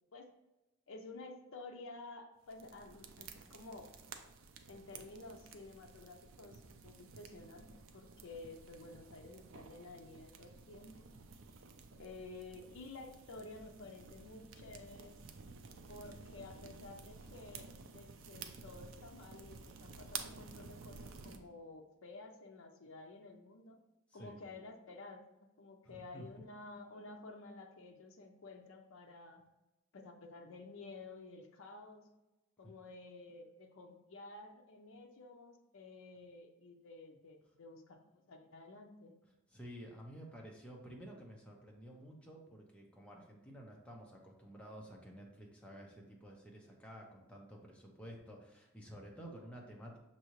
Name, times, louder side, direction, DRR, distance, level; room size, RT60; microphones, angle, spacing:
voice 1, 0.9-3.9 4.7-11.1 11.9-15.2 15.9-23.8 24.1-29.4 29.9-32.1 32.6-39.1, left 3 dB, 70° left, 3 dB, 0.5 m, -52 dB
sound 1, 2.5-21.4, right 5 dB, 65° right, 0.4 m, -52 dB
voice 2, 25.8-26.3 32.6-32.7 39.5-50.0, equal, 5° left, -1 dB, 0.6 m, -52 dB
6.0 x 2.7 x 3.0 m, 1.0 s
head